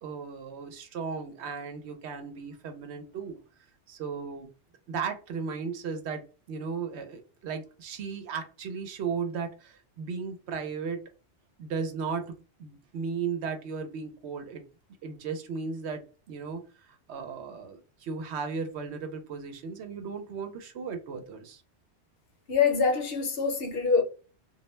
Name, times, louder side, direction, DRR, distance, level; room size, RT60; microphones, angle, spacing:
voice 1, 0.0-3.4 3.9-4.5 4.9-6.2 6.5-11.1 11.6-14.6 15.0-21.6, right 5 dB, 70° right, 0.8 m, -36 dB
voice 2, 22.5-24.0, left 5 dB, 60° left, 0.8 m, -24 dB
2.3 x 2.1 x 3.0 m
omnidirectional pair, 1.2 m